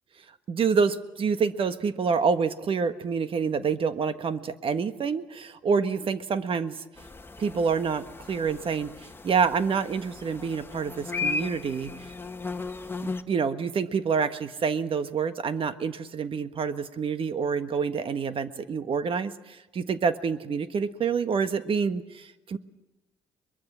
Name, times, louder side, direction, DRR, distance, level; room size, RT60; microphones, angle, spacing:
voice 1, 0.5-6.8 7.4-8.9 9.2-11.9 13.0-22.6, right 6 dB, 50° right, 11 dB, 1.5 m, -27 dB
sound 1, 7.0-13.2, left 4 dB, 20° left, 1.4 m, -36 dB
22.5 x 22.0 x 7.5 m, 1.0 s
supercardioid pair, 60°, 12 cm